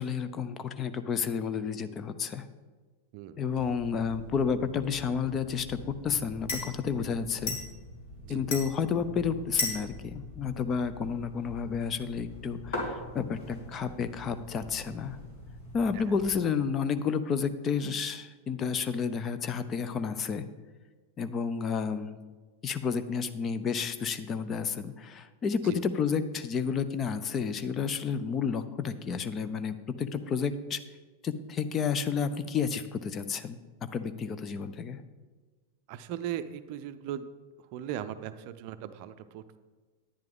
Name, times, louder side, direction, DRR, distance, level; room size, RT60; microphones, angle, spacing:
voice 1, 0.0-2.4 3.4-7.6 8.3-15.2 15.7-20.5 21.2-22.2 22.6-30.8 31.2-35.0, left 6 dB, 25° left, 11 dB, 0.6 m, -31 dB
sound 1, 3.5-16.3, left 2 dB, 50° left, 2.6 m, -40 dB
voice 2, 35.9-37.3 37.7-39.6, right 10 dB, 45° right, 11 dB, 0.5 m, -38 dB
10.5 x 10.0 x 3.7 m, 1.4 s
figure-of-eight pair, 90°, 0 cm